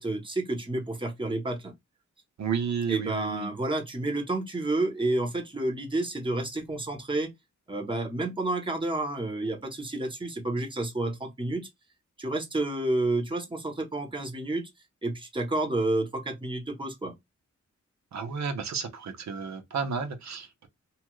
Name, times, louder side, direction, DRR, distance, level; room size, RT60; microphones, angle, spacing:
voice 1, 0.0-1.7 2.9-7.3 7.7-11.6 12.2-14.7 15.0-17.1, right 2 dB, 15° right, 1.0 m, -30 dB
voice 2, 2.4-3.5 18.1-20.7, right 6 dB, 70° right, 0.7 m, -32 dB
2.8 x 2.3 x 3.0 m
cardioid pair, 75°, 29 cm